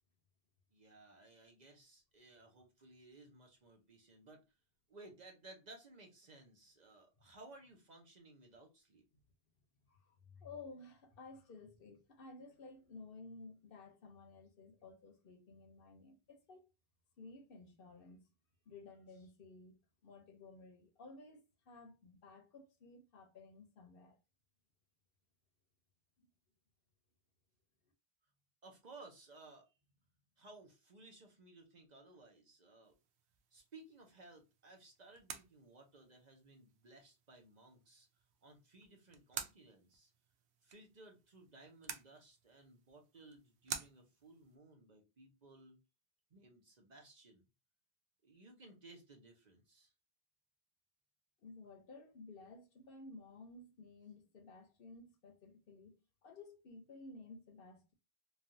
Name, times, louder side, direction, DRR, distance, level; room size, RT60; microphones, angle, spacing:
voice 1, 0.7-4.4 4.9-9.1 28.6-29.7 30.4-33.0 33.5-38.1 38.4-40.1 40.6-45.8 46.3-47.4 48.2-49.9, right 2 dB, 45° right, 0.8 m, -59 dB
voice 2, 9.9-16.6 17.2-18.3 18.7-24.2 26.2-26.3 51.4-55.9 56.2-57.9, left 3 dB, 60° left, 0.9 m, -55 dB
sound 1, 32.8-44.6, right 7 dB, 90° right, 0.9 m, -52 dB
3.2 x 2.3 x 2.6 m
omnidirectional pair, 1.1 m